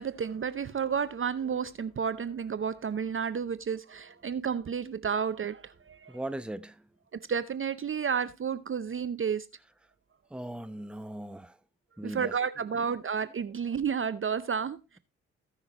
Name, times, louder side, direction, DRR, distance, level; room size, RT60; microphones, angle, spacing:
voice 1, 0.0-6.2 7.3-9.5 12.0-15.0, right 7 dB, 35° right, 0.7 m, -31 dB
voice 2, 6.1-6.9 10.3-11.6 12.0-12.9 13.2-13.3, right 1 dB, 5° right, 0.9 m, -40 dB
18.0 x 6.0 x 2.9 m
hypercardioid pair, 45°, 35 cm